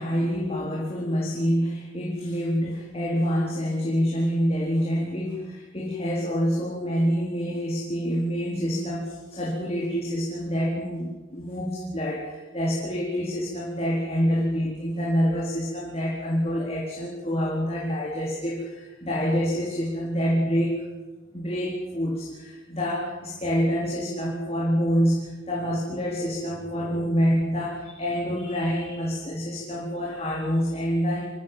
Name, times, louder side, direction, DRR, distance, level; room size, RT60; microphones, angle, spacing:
voice 1, 0.0-20.8 21.3-31.3, equal, 30° left, -4 dB, 4.5 m, -27 dB
25.5 x 17.0 x 7.7 m, 1.2 s
head